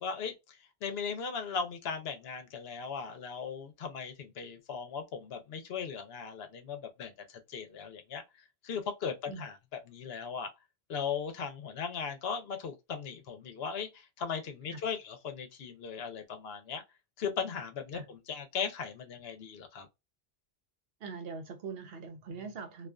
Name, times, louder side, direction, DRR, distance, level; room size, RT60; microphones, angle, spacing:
voice 1, 0.0-8.2 8.6-9.6 9.9-10.5 10.9-16.8 17.2-19.9, left 6 dB, 75° left, 0.9 m, -38 dB
voice 2, 21.0-22.9, right 4 dB, 70° right, 0.8 m, -42 dB
2.5 x 2.3 x 2.2 m
omnidirectional pair, 1.1 m